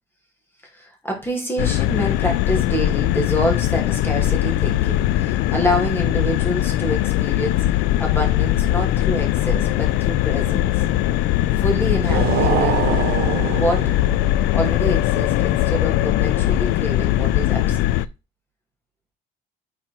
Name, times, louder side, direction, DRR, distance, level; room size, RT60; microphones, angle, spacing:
voice 1, 0.7-10.8 11.5-13.0 13.3-14.0 14.5-17.9, equal, 15° left, 1 dB, 2.7 m, -27 dB
sound 1, 1.6-18.1, left 14 dB, 90° left, 0.4 m, -20 dB
sound 2, 12.0-14.3, right 9 dB, 70° right, 1.2 m, -24 dB
5.9 x 4.4 x 4.4 m, 0.28 s
cardioid pair, 110°, 17 cm